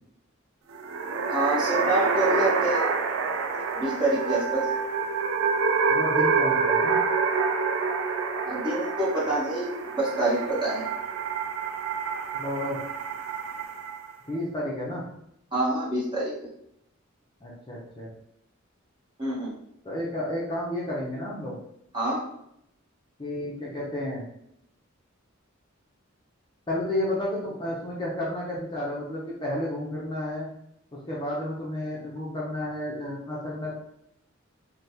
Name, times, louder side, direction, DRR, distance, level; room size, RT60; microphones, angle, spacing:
sound 1, 0.7-14.1, right 5 dB, 85° right, 0.4 m, -27 dB
voice 1, 1.3-2.8 3.7-4.7 8.4-10.8 15.5-16.3 19.2-19.5 21.9-22.2, right 2 dB, 25° right, -8 dB, 1.2 m, -26 dB
voice 2, 5.9-7.0 12.3-12.8 14.3-15.1 17.4-18.1 19.8-21.6 23.2-24.2 26.7-30.5 30.9-33.7, left 1 dB, 20° left, -5 dB, 0.5 m, -31 dB
3.3 x 2.1 x 2.7 m, 0.75 s
head